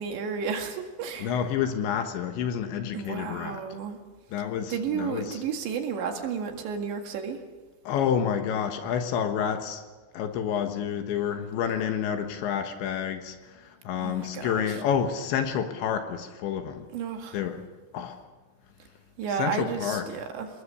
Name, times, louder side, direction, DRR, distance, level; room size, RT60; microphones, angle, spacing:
voice 1, 0.0-1.3 2.9-4.0 4.7-7.4 14.0-14.8 16.9-17.4 19.2-20.5, right 6 dB, 70° right, 4 dB, 4.0 m, -32 dB
voice 2, 1.2-3.6 4.3-5.4 7.9-9.8 10.1-16.9 17.3-17.6 17.9-18.2 19.4-20.1, left 8 dB, 75° left, 6 dB, 3.5 m, -29 dB
29.0 x 20.0 x 6.9 m, 1.3 s
omnidirectional pair, 5.7 m